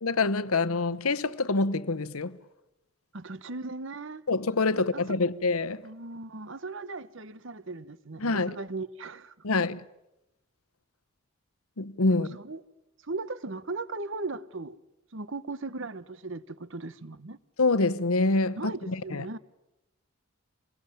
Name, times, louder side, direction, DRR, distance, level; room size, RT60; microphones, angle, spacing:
voice 1, 0.0-2.4 4.3-5.9 8.2-8.6 9.4-9.8 11.8-12.3 17.6-19.2, left 3 dB, 80° left, 1.0 m, -26 dB
voice 2, 3.1-4.2 4.8-5.2 5.8-9.3 12.1-12.6 13.0-14.8 15.1-17.4 18.6-19.4, right 3 dB, 60° right, 1.0 m, -38 dB
26.5 x 21.0 x 9.2 m
head